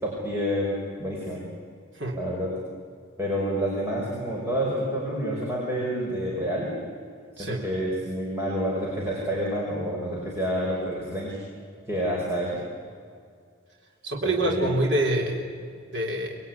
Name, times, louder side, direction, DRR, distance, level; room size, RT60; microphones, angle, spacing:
voice 1, 0.0-1.4 2.1-2.5 3.2-6.7 7.4-11.4 11.8-12.6 14.2-14.7, equal, 15° right, -4 dB, 5.1 m, -28 dB
voice 2, 14.0-15.4 15.9-16.4, right 1 dB, 60° right, 0 dB, 3.6 m, -26 dB
26.5 x 21.0 x 9.8 m, 2.2 s
head